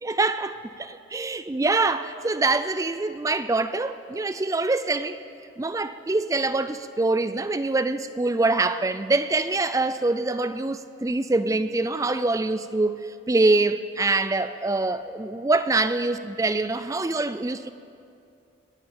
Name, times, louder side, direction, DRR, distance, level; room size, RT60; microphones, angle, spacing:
voice 1, 0.0-5.2 5.6-17.7, right 2 dB, 15° right, 0.3 m, -24 dB
22.0 x 8.7 x 7.2 m
head